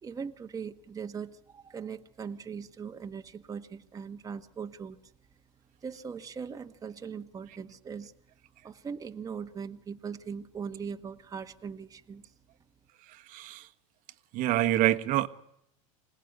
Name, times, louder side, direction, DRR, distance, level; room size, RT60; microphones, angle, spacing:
voice 1, 0.0-5.0 5.8-8.1 8.6-12.3, right 6 dB, 20° right, 6 dB, 1.4 m, -40 dB
voice 2, 13.3-13.7 14.3-15.3, right 14 dB, 50° right, 10 dB, 1.4 m, -26 dB
26.0 x 17.5 x 9.6 m, 0.79 s
supercardioid pair, 115°, 17 cm